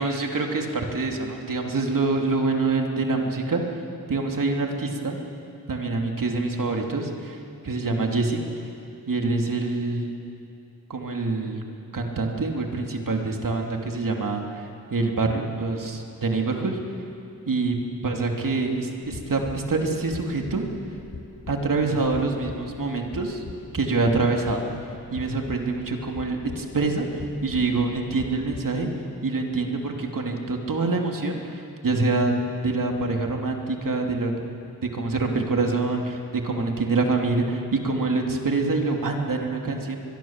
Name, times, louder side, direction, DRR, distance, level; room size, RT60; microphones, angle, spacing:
voice 1, 0.0-3.8 4.1-5.2 5.7-7.4 7.6-8.4 9.1-10.1 10.9-11.6 11.9-16.8 17.5-17.8 18.0-20.7 21.5-23.4 23.7-24.7 25.1-28.9 29.2-34.5 34.9-40.0, right 3 dB, 60° right, 2 dB, 2.9 m, -25 dB
sound 1, 19.0-28.7, left 4 dB, 40° left, 1.7 m, -42 dB
22.5 x 22.5 x 7.4 m, 2.6 s
wide cardioid pair, 90°, 37 cm